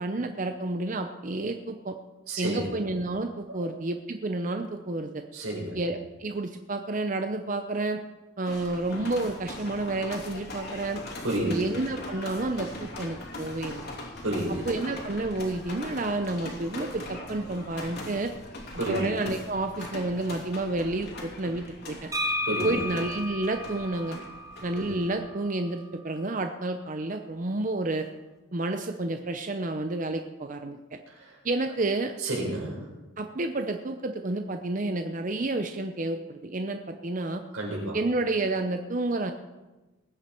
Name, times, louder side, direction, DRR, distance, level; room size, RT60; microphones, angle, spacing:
voice 1, 0.0-2.0 2.4-5.2 5.7-8.0 8.4-11.0 11.4-13.8 14.5-18.3 18.9-22.1 22.6-24.2 24.6-28.1 28.5-31.0 31.4-32.1 33.2-37.4 37.9-39.3, right 2 dB, 40° right, 6 dB, 0.6 m, -30 dB
voice 2, 2.3-2.7 3.5-3.6 5.3-5.8 11.2-11.5 14.2-14.6 18.8-19.0 22.4-22.8 24.7-24.9 31.2-31.3 32.2-32.8 37.5-38.0, right 1 dB, 85° right, -1 dB, 4.8 m, -30 dB
sound 1, 8.5-25.2, left 2 dB, 50° left, 2.9 m, -41 dB
sound 2, 22.1-25.9, left 1 dB, 15° right, 1.3 m, -34 dB
20.5 x 9.3 x 4.5 m, 1.1 s
head